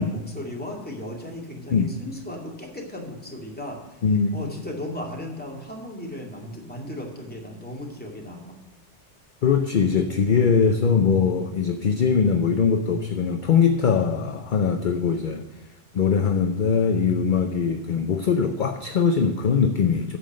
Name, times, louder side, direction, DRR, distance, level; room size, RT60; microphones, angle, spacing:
voice 1, 0.0-4.0 4.3-8.6, left 1 dB, 10° left, -2 dB, 2.3 m, -36 dB
voice 2, 4.0-4.4 9.4-15.5 15.9-20.2, left 6 dB, 50° left, 7 dB, 0.7 m, -21 dB
9.2 x 7.1 x 7.4 m, 1.2 s
omnidirectional pair, 1.2 m